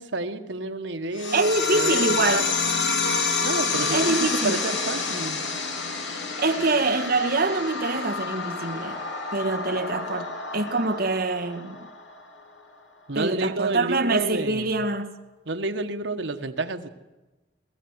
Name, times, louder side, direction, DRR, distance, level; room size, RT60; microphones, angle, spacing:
voice 1, 0.0-2.5 3.4-4.2 4.4-5.4 13.1-14.7 15.5-16.9, right 3 dB, 90° right, 1.4 m, -29 dB
sound 1, 1.2-12.2, left 4 dB, 90° left, 3.0 m, -28 dB
voice 2, 1.3-2.4 3.9-4.6 6.0-9.0 9.3-11.8 13.1-15.1, right 2 dB, 55° right, 1.6 m, -25 dB
20.0 x 15.0 x 9.7 m
head